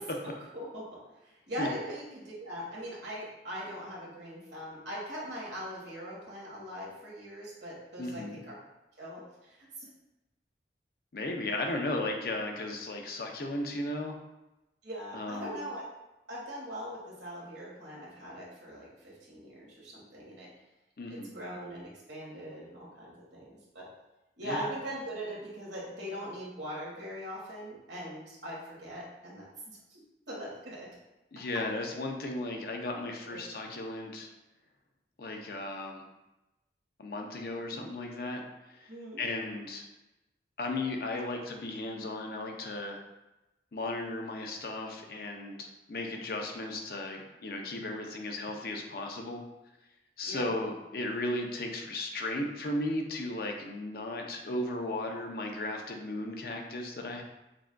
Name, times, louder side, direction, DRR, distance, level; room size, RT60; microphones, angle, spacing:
voice 1, 0.2-8.5 9.0-9.9 14.8-15.9 16.3-20.5 21.3-23.9 24.4-30.0 30.3-30.9 33.3-33.4 38.9-39.2 50.2-50.4, equal, 80° right, -5 dB, 1.4 m, -41 dB
voice 2, 8.0-8.4 11.1-14.2 15.1-15.6 21.0-21.3 24.4-24.7 31.3-34.3 35.2-36.1 37.0-38.4 38.7-38.9 39.2-39.8 40.6-43.0 43.7-49.4 50.2-57.2, left 2 dB, 55° left, 2 dB, 0.5 m, -35 dB
5.9 x 2.4 x 2.2 m, 0.98 s
head